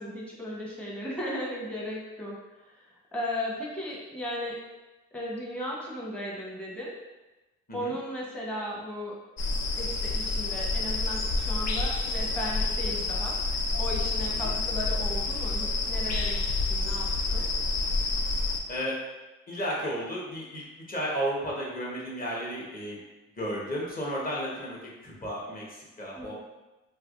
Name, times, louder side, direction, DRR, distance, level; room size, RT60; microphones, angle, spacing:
voice 1, 0.0-4.6 5.1-6.9 7.7-9.2 9.8-13.5 13.8-17.5 26.1-26.3, equal, 5° left, -4 dB, 1.0 m, -36 dB
sound 1, 9.4-18.6, left 3 dB, 60° left, 0.5 m, -28 dB
voice 2, 18.7-19.0 19.5-23.0 23.4-26.3, equal, 30° left, -4 dB, 1.1 m, -33 dB
3.4 x 3.2 x 2.5 m, 1.1 s
cardioid pair, 90°, 30 cm